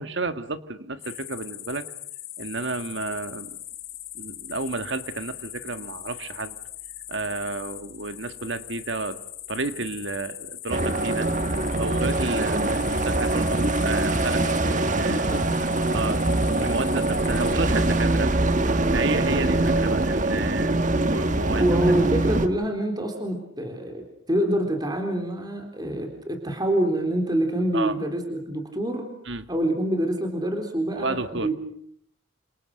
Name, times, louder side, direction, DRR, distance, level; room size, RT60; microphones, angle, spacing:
voice 1, 0.0-1.8 2.4-3.6 4.1-6.5 7.1-9.2 9.5-11.3 11.7-15.3 15.6-16.2 16.6-18.3 18.6-21.6 27.7-27.9 29.2-29.4 31.0-31.5, right 3 dB, 60° right, 10 dB, 1.8 m, -31 dB
sound 1, 1.0-17.5, left 13 dB, 50° left, 2.8 m, -41 dB
sound 2, 10.7-22.5, right 2 dB, 40° right, 1.7 m, -23 dB
voice 2, 15.0-15.6 15.9-16.1 21.6-29.1 29.5-31.5, right 1 dB, 20° right, 4 dB, 3.8 m, -26 dB
29.5 x 27.0 x 6.6 m, 0.67 s
head